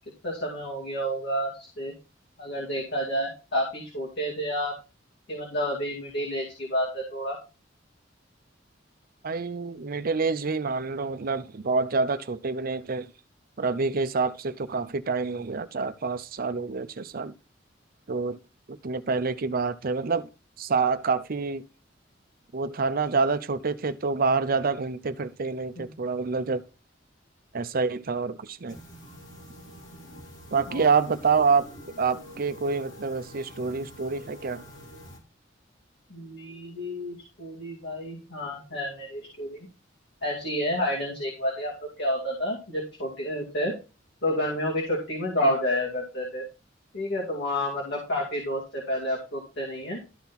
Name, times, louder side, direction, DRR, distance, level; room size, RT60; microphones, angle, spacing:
voice 1, 0.2-1.9 2.4-4.8 5.3-7.4 25.8-25.9 30.7-30.8 36.1-39.7 40.2-41.7 42.0-43.7 44.2-46.5 46.9-50.0, equal, 65° left, 2.4 m, -30 dB
voice 2, 9.2-13.1 13.6-17.3 18.1-18.4 18.7-20.3 20.6-21.7 22.5-26.6 27.5-28.8 30.5-31.7 32.0-34.6, right 4 dB, 50° right, 0.6 m, -27 dB
sound 1, 28.7-35.2, equal, 85° left, 2.7 m, -46 dB
12.5 x 4.3 x 4.1 m
head